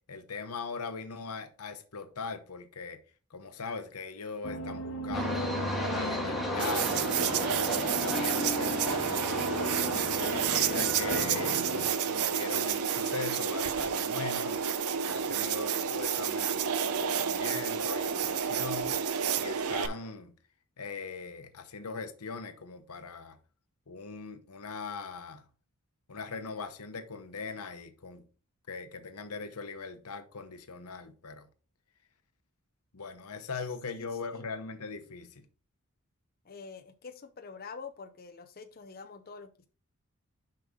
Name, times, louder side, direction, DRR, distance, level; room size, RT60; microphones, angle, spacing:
voice 1, 0.1-3.0 3.3-9.4 9.9-11.6 12.0-14.6 15.1-19.0 19.4-20.4 20.8-23.4 23.9-25.4 26.1-28.3 28.7-31.5 32.9-35.4, left 4 dB, 85° left, 1.0 m, -40 dB
sound 1, 4.4-11.9, left 1 dB, 65° left, 1.4 m, -37 dB
sound 2, 5.1-20.1, equal, ahead, 1.5 m, -39 dB
sound 3, 6.6-19.9, right 7 dB, 80° right, 0.6 m, -30 dB
voice 2, 33.6-34.4 36.4-39.7, left 5 dB, 40° left, 0.6 m, -47 dB
6.7 x 5.5 x 3.6 m
head